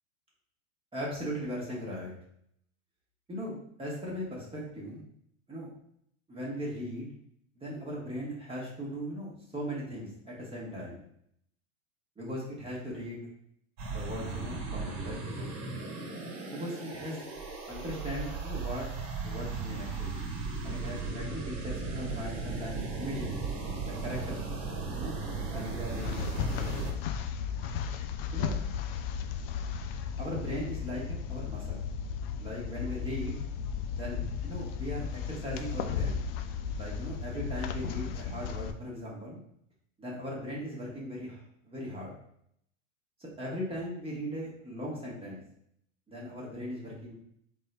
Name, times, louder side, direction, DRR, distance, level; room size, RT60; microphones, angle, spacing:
voice 1, 0.9-2.1 3.3-5.0 5.5-5.7 6.3-7.1 7.6-11.0 12.2-13.2 13.9-15.5 16.5-17.2 17.7-18.9 19.2-20.2 20.6-23.3 23.8-24.4 24.9-25.2 25.5-26.8 28.3-28.6 30.2-31.8 32.4-33.4 33.9-36.2 36.8-39.4 40.0-42.1 43.2-45.4 46.1-47.1, equal, 15° right, -5 dB, 1.2 m, -38 dB
sound 1, 13.8-26.9, right 4 dB, 45° right, 1.4 m, -36 dB
sound 2, 25.7-38.7, left 7 dB, 50° left, 0.4 m, -35 dB
3.9 x 3.6 x 2.2 m, 0.70 s
hypercardioid pair, 100°, 38 cm